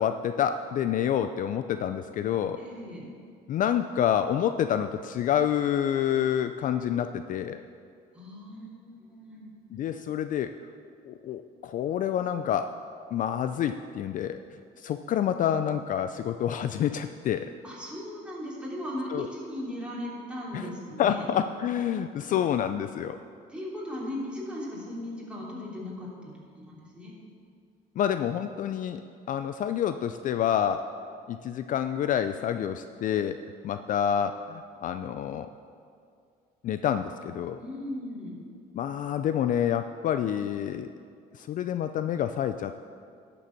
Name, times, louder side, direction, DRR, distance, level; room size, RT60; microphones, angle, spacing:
voice 1, 0.0-2.6 3.5-7.6 9.7-10.5 11.1-12.8 13.1-14.4 14.8-17.5 19.1-19.3 20.5-20.7 21.0-23.2 28.0-29.0 29.3-30.9 31.3-35.5 36.6-37.6 38.7-40.9 41.3-42.9, left 9 dB, 50° left, 10 dB, 0.4 m, -28 dB
voice 2, 2.6-3.0 8.1-9.5 17.6-21.2 23.5-27.1 37.6-38.4, left 1 dB, 5° right, -6 dB, 3.1 m, -37 dB
11.5 x 6.9 x 5.9 m, 2.3 s
cardioid pair, 110°, 17 cm